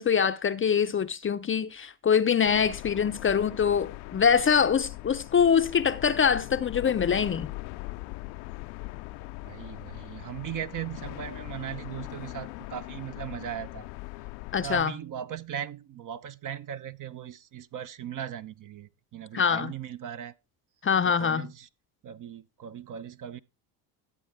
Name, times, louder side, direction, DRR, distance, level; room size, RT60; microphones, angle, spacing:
voice 1, 0.0-7.5 14.5-14.9 19.3-19.7 20.8-21.5, left 7 dB, 25° left, 0.6 m, -24 dB
sound 1, 2.4-14.8, left 21 dB, 75° left, 0.7 m, -40 dB
voice 2, 9.4-13.8 14.6-20.3 21.0-21.7 22.0-23.4, right 10 dB, 40° right, 0.7 m, -38 dB
12.0 x 8.0 x 3.5 m
hypercardioid pair, 75°, 50 cm